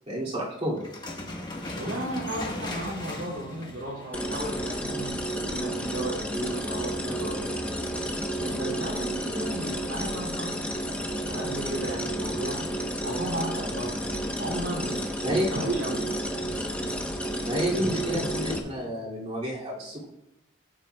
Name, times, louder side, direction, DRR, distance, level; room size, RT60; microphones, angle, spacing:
voice 1, 0.1-0.8 15.2-15.6 17.4-20.1, equal, 35° right, -6 dB, 2.4 m, -29 dB
sound 1, 0.8-5.0, left 1 dB, 20° left, 1.2 m, -37 dB
voice 2, 1.7-7.7 8.4-10.6 11.3-12.6 13.0-14.0 14.4-16.1 17.8-18.4, right 1 dB, 65° right, -1 dB, 2.6 m, -34 dB
sound 2, 4.1-18.6, right 1 dB, 5° left, 0.8 m, -31 dB
14.0 x 8.9 x 2.3 m, 0.86 s
head